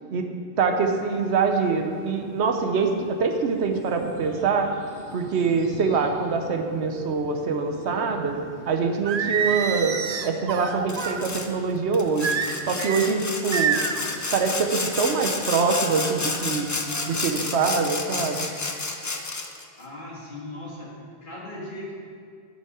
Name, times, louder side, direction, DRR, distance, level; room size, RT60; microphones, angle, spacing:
voice 1, 0.6-4.7 5.1-8.4 8.6-12.3 12.6-13.8 14.3-16.7 17.1-18.5, right 5 dB, 90° right, 5 dB, 1.1 m, -24 dB
sound 1, 0.7-17.5, equal, 20° right, 2.4 m, -45 dB
Singing, 9.1-11.2 12.2-13.1 13.5-14.0, right 7 dB, 55° right, 0.5 m, -26 dB
Sawing, 10.9-11.5 11.9-19.6, left 3 dB, 30° left, 0.3 m, -30 dB
voice 2, 19.8-21.9, left 1 dB, 50° left, -4 dB, 2.1 m, -38 dB
10.5 x 5.6 x 4.8 m, 2.2 s
omnidirectional pair, 1.1 m